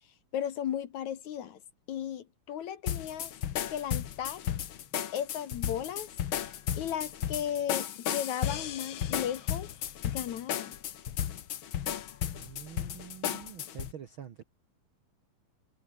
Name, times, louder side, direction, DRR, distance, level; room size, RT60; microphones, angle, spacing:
voice 1, 0.3-1.6 1.9-3.3 3.7-4.5 5.1-6.1 6.7-9.7 10.0-10.8, left 10 dB, 60° left, 2.4 m, -35 dB
sound 1, 2.9-13.9, left 10 dB, 80° left, 1.1 m, -34 dB
voice 2, 12.3-14.4, right 9 dB, 65° right, 1.3 m, -46 dB
omnidirectional pair, 4.1 m